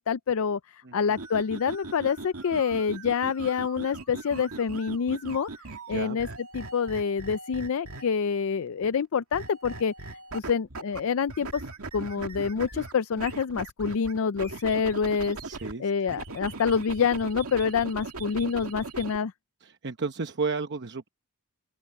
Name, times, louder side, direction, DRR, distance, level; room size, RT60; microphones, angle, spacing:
voice 1, 0.0-5.5 5.9-6.3 6.5-9.9 10.3-11.6 11.9-15.4 15.8-19.3, left 6 dB, 65° left, 0.4 m, -27 dB
sound 1, 1.1-8.3 9.3-11.0 11.3-15.7 16.1-19.2, right 3 dB, 70° right, 2.4 m, -40 dB
voice 2, 15.4-16.2 19.6-21.1, right 4 dB, 55° right, 0.9 m, -33 dB
open air
head